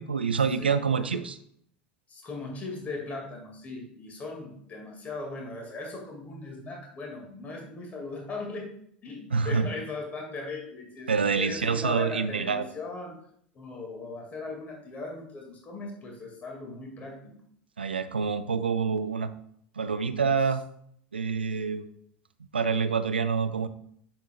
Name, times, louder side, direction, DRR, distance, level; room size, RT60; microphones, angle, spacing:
voice 1, 0.0-1.4 9.3-9.7 11.1-12.7 17.8-19.3 19.8-20.6 21.1-21.9 22.5-23.7, right 5 dB, 80° right, 12 dB, 0.4 m, -27 dB
voice 2, 0.6-1.2 2.1-8.7 9.0-11.1 11.4-13.2 13.5-17.3, left 3 dB, 30° left, 0 dB, 2.1 m, -38 dB
8.1 x 6.5 x 2.3 m, 0.68 s
figure-of-eight pair, 75°, 5 cm